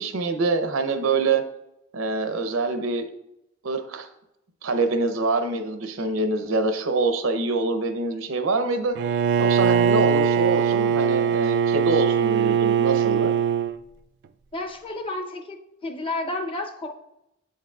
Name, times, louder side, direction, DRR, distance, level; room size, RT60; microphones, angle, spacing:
voice 1, 0.0-1.4 1.9-3.1 3.6-4.1 4.6-9.0 9.4-13.4, right 3 dB, 90° right, 8 dB, 0.7 m, -25 dB
Bowed string instrument, 9.0-13.8, right 7 dB, 60° right, 0.3 m, -21 dB
voice 2, 14.5-15.6 15.8-16.9, left 2 dB, 25° left, 3 dB, 0.7 m, -31 dB
7.7 x 7.4 x 2.3 m, 0.85 s
head